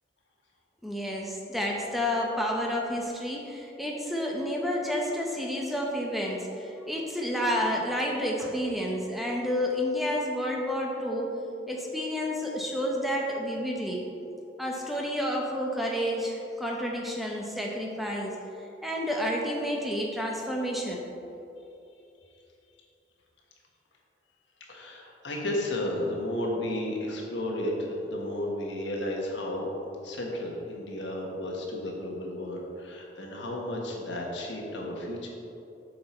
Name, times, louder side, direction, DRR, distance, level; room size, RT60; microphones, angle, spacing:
voice 1, 0.8-11.3 11.7-14.0 14.6-18.4 18.8-21.0, equal, ahead, -1 dB, 0.8 m, -30 dB
voice 2, 24.7-29.7 30.0-35.3, left 1 dB, 70° left, -1 dB, 1.4 m, -33 dB
7.5 x 6.8 x 4.4 m, 2.9 s
head